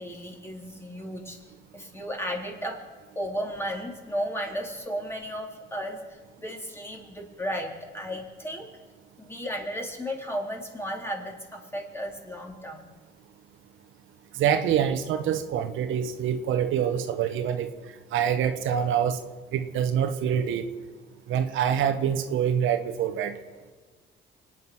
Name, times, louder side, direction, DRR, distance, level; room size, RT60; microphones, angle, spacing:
voice 1, 0.0-1.4 1.7-2.8 3.1-8.7 9.2-12.9, equal, 10° left, 0 dB, 3.6 m, -34 dB
voice 2, 14.3-17.7 18.1-19.2 19.5-20.6 21.3-23.4, right 9 dB, 85° right, 8 dB, 1.2 m, -25 dB
24.5 x 9.4 x 6.2 m, 1.4 s
cardioid pair, 90°, 20 cm